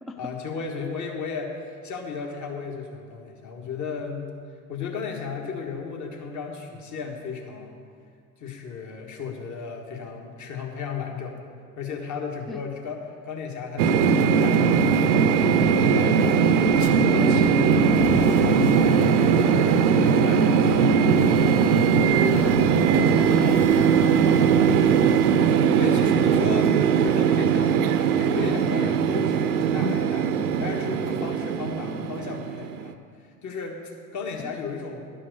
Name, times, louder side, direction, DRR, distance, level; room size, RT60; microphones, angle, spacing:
voice 1, 0.2-4.3 4.7-7.8 8.4-11.4 11.8-15.5 15.9-16.3 16.8-19.1 19.4-20.8 25.5-35.1, left 5 dB, 40° left, 1 dB, 1.7 m, -35 dB
sound 1, 13.8-32.9, right 6 dB, 75° right, 0.7 m, -20 dB
sound 2, 16.7-16.9 17.5-26.0, left 3 dB, 55° left, 1.3 m, -38 dB
voice 2, 21.3-21.7 22.3-22.6 22.9-24.9 34.4-34.5, left 2 dB, ahead, 5 dB, 0.5 m, -36 dB
11.5 x 5.6 x 6.7 m, 2.2 s
figure-of-eight pair, 65°, 46 cm